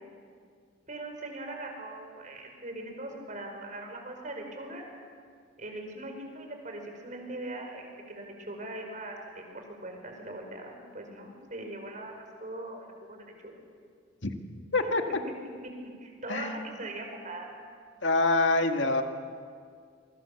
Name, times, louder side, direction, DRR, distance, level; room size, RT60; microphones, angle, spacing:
voice 1, 0.9-4.8 5.6-13.6 15.6-17.5, right 2 dB, 40° right, 3 dB, 4.9 m, -41 dB
voice 2, 16.3-16.7 18.0-19.0, left 2 dB, 70° left, 4 dB, 2.0 m, -25 dB
28.0 x 23.5 x 7.0 m, 2.1 s
head